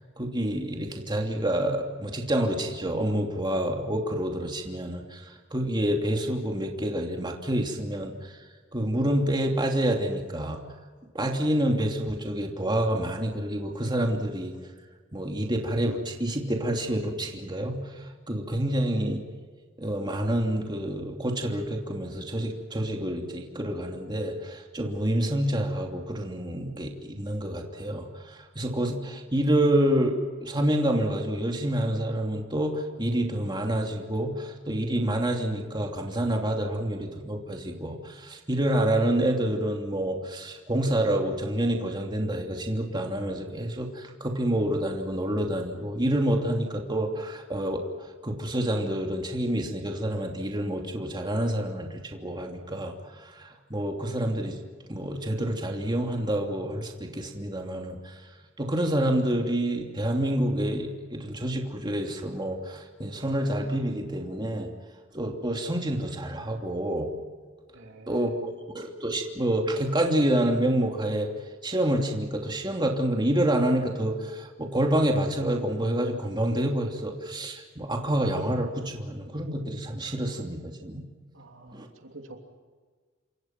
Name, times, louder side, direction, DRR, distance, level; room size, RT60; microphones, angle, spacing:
voice 1, 0.2-10.6 11.1-14.5 15.1-19.2 19.8-47.8 48.2-54.6 54.9-58.3 58.6-64.7 65.1-67.1 68.1-68.3 68.7-71.3 71.6-81.0 81.7-81.9, right 1 dB, 20° right, 1 dB, 2.9 m, -28 dB
voice 2, 67.7-68.4 81.3-82.4, right 2 dB, 65° right, 3 dB, 3.2 m, -48 dB
29.0 x 26.0 x 6.0 m, 1.5 s
head